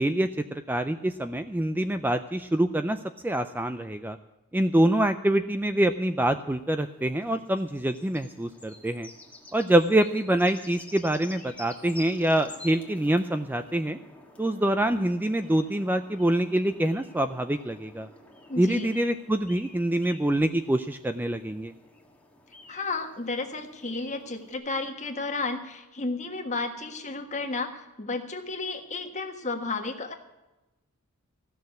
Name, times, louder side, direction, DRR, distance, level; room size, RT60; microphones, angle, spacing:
voice 1, 0.0-4.2 4.5-9.1 9.5-14.0 14.4-18.1 18.6-21.7, right 1 dB, 10° right, 9 dB, 0.4 m, -25 dB
sound 1, 6.3-24.5, left 2 dB, 5° left, 1.5 m, -50 dB
voice 2, 18.5-18.9 22.7-30.1, left 3 dB, 35° left, 4 dB, 1.5 m, -32 dB
15.5 x 6.6 x 9.3 m, 1.0 s
head